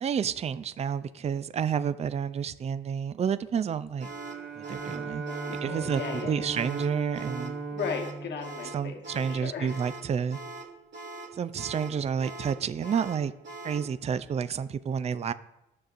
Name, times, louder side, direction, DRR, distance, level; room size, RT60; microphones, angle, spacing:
voice 1, 0.0-4.1 4.6-5.2 5.6-7.6 8.7-10.4 11.3-13.3 13.6-15.3, right 7 dB, 35° right, 14 dB, 0.4 m, -30 dB
sound 1, 4.0-13.9, right 2 dB, 65° right, 1.6 m, -42 dB
Bowed string instrument, 4.0-9.5, right 4 dB, 80° right, 2.1 m, -37 dB
voice 2, 5.2-6.5 7.7-9.8, left 5 dB, 60° left, 3 dB, 1.2 m, -36 dB
13.0 x 6.4 x 2.5 m, 0.88 s
cardioid pair, 90°, 20 cm